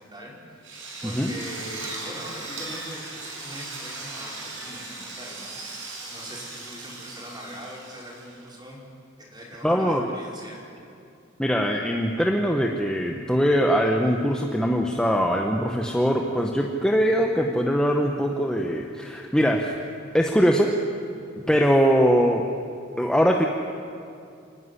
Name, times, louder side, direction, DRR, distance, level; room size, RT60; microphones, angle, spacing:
voice 1, 0.0-8.8 9.2-10.6, equal, 20° right, -4 dB, 5.3 m, -41 dB
Drill, 0.6-8.5, right 2 dB, 70° right, 5.6 m, -38 dB
voice 2, 9.6-10.1 11.4-19.7 20.1-20.8 21.5-22.4 23.0-23.5, equal, 5° left, 0 dB, 1.0 m, -22 dB
28.0 x 10.5 x 9.8 m, 2.5 s
head